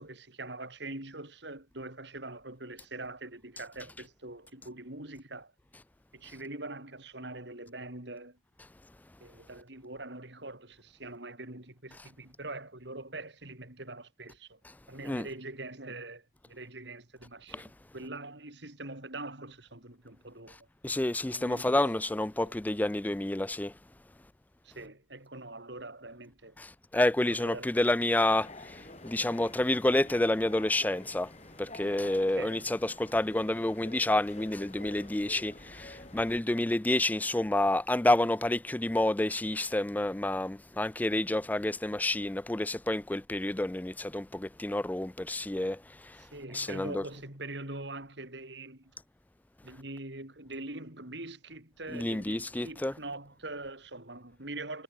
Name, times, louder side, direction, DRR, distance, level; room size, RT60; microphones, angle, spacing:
voice 1, 0.0-5.5 6.1-8.4 9.2-14.6 14.9-20.6 21.3-21.9 22.4-22.5 24.6-26.6 27.3-27.7 32.4-32.7 46.2-48.9 49.6-54.8, right 2 dB, 65° right, 4.3 m, -43 dB
voice 2, 20.8-23.7 26.6-31.3 31.6-46.3 46.5-47.0 51.9-52.9, left 1 dB, 10° left, 0.3 m, -29 dB
sound 1, 28.3-36.4, left 2 dB, 35° left, 3.1 m, -49 dB
head